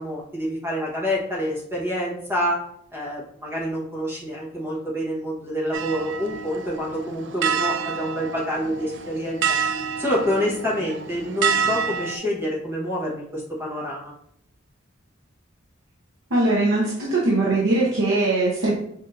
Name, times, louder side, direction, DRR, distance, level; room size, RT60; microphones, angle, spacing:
voice 1, 0.0-2.6 2.9-9.4 10.0-14.1, equal, 15° right, -5 dB, 1.0 m, -27 dB
sound 1, 5.7-12.2, right 6 dB, 65° right, 0.4 m, -28 dB
voice 2, 16.3-18.8, right 2 dB, 85° right, -6 dB, 0.9 m, -21 dB
6.3 x 2.7 x 2.5 m, 0.68 s
head